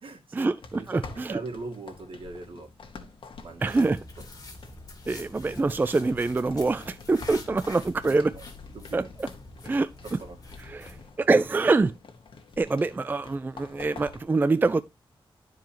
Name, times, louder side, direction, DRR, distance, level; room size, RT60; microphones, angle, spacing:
voice 1, 0.0-0.5 0.8-2.7 3.4-3.7 8.0-9.1 10.0-10.4, right 3 dB, 70° right, 2.2 m, -40 dB
sound 1, 0.6-14.3, left 4 dB, 65° left, 1.4 m, -48 dB
voice 2, 0.9-1.3 3.6-4.0 5.1-8.3 8.9-9.0 9.6-9.9 10.7-11.9 12.6-14.8, right 3 dB, 20° right, 0.3 m, -24 dB
sound 2, 3.7-11.1, left 3 dB, 40° left, 2.2 m, -46 dB
12.0 x 4.7 x 2.8 m
wide cardioid pair, 155°, 9 cm